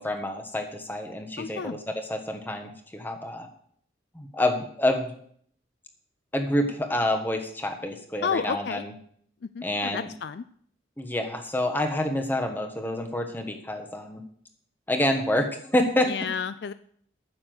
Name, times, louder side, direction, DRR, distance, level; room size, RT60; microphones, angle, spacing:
voice 1, 0.0-3.5 4.1-5.1 6.3-8.9 9.6-10.1 11.0-14.2 14.9-16.1, left 1 dB, 10° left, 5 dB, 1.3 m, -28 dB
voice 2, 1.4-1.8 8.2-8.8 9.4-10.4 16.1-16.7, left 6 dB, 60° left, 13 dB, 0.4 m, -31 dB
9.6 x 6.9 x 7.8 m, 0.63 s
head